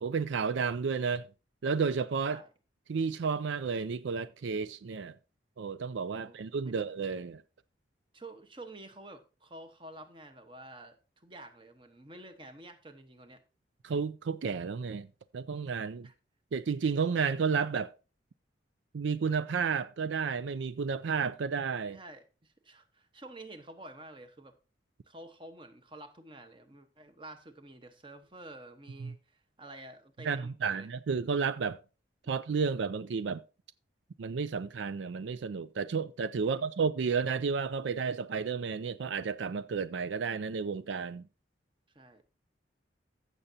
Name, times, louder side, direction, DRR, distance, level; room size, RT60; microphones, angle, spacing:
voice 1, 0.0-1.3 1.6-2.4 2.9-5.1 5.6-7.4 13.8-15.1 15.3-16.1 16.5-17.9 18.9-22.0 29.0-29.1 30.2-31.8 32.3-33.4 34.2-41.2, right 5 dB, 80° right, 0.4 m, -32 dB
voice 2, 6.1-6.8 8.1-13.4 16.0-16.1 21.9-24.5 25.1-30.9 36.4-36.6 41.9-42.2, right 2 dB, 25° right, 1.1 m, -50 dB
15.5 x 6.7 x 2.8 m
head